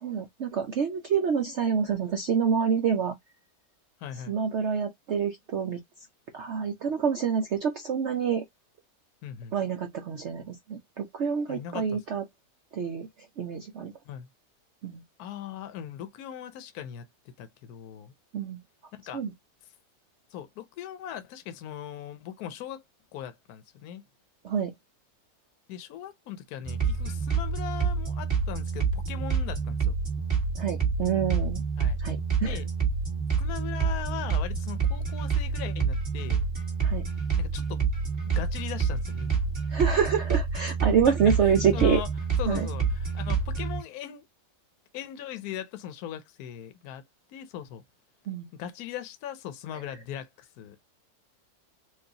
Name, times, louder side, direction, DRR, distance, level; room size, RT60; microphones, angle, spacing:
voice 1, 0.0-3.2 4.3-5.8 6.3-8.4 9.5-12.2 12.7-13.1 13.4-13.9 14.8-15.0 18.3-18.6 19.1-19.3 24.4-24.7 30.6-31.6 32.0-32.6 36.8-37.0 39.7-42.0 42.5-42.7 48.3-48.5, right 7 dB, 85° right, 0.6 m, -27 dB
voice 2, 4.0-4.3 9.2-9.5 11.5-12.0 14.0-14.3 15.2-17.1 17.4-18.1 19.1-19.2 20.3-22.8 23.1-24.0 25.7-29.9 31.8-32.0 32.4-32.7 33.4-36.5 37.4-37.8 38.3-39.4 41.1-42.1 42.4-44.2 44.9-47.0 47.3-47.8 48.5-50.8, left 10 dB, 65° left, 1.1 m, -39 dB
sound 1, 26.6-43.8, right 5 dB, 30° right, 2.0 m, -28 dB
4.6 x 2.5 x 2.7 m
omnidirectional pair, 2.0 m